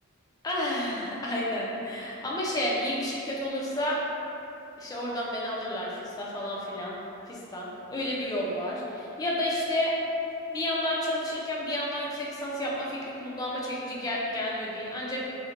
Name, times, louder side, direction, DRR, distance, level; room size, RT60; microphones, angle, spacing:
voice 1, 0.4-4.0 4.8-5.9 6.2-7.0 7.3-9.9 10.5-15.3, left 1 dB, 20° left, -4 dB, 0.3 m, -31 dB
2.5 x 2.0 x 2.8 m, 2.8 s
head